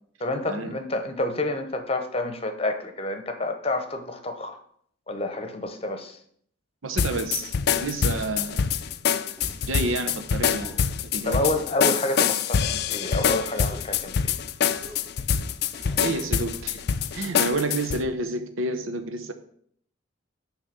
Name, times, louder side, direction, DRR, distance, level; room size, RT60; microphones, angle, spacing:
voice 1, 0.2-4.6 5.1-6.2 11.2-14.3, left 2 dB, 30° left, 7 dB, 0.8 m, -29 dB
voice 2, 6.8-8.6 9.6-10.8 11.1-11.4 16.0-16.8 17.1-19.3, right 2 dB, 80° right, 7 dB, 0.9 m, -29 dB
sound 1, 7.0-18.0, left 7 dB, 50° left, 0.4 m, -25 dB
sound 2, 9.4-9.8 10.6-10.9 11.5-12.0 12.7-13.1 13.5-13.9 14.6-15.1 15.7-16.1, equal, 20° right, 1.1 m, -44 dB
9.8 x 3.3 x 6.7 m, 0.64 s
head